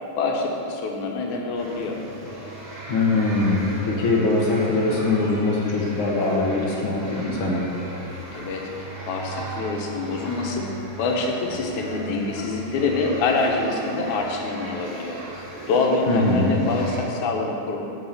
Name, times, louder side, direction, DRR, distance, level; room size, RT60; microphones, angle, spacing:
voice 1, 0.2-2.0 8.3-17.8, left 3 dB, 90° left, 1 dB, 2.4 m, -26 dB
sound 1, 1.5-17.0, right 2 dB, 10° left, 1.5 m, -38 dB
voice 2, 2.9-7.7 16.1-16.6, left 2 dB, 50° left, -3 dB, 1.9 m, -22 dB
10.0 x 4.8 x 7.0 m, 2.8 s
omnidirectional pair, 3.3 m